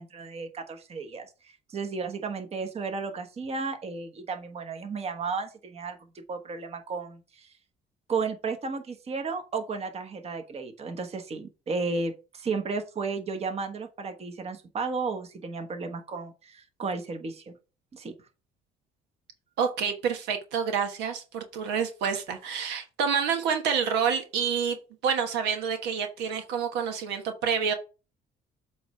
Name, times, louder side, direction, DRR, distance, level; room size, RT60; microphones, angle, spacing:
voice 1, 0.0-6.0 6.3-7.5 8.1-17.6 17.9-18.1, right 4 dB, 35° right, 5 dB, 1.2 m, -33 dB
voice 2, 19.6-24.8 25.0-27.7, right 7 dB, 85° right, 6 dB, 1.2 m, -28 dB
7.9 x 3.2 x 5.5 m, 0.32 s
cardioid pair, 110°, 17 cm